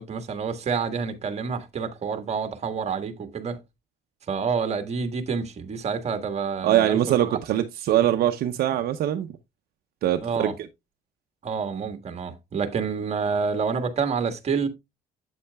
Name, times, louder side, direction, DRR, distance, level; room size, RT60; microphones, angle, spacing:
voice 1, 0.0-3.6 4.3-7.3 10.2-10.5 11.4-14.7, right 5 dB, 40° right, 1.5 m, -28 dB
voice 2, 6.6-9.3 10.0-10.5, right 12 dB, 65° right, 0.7 m, -22 dB
8.5 x 8.4 x 2.3 m
cardioid pair, 110°, 17 cm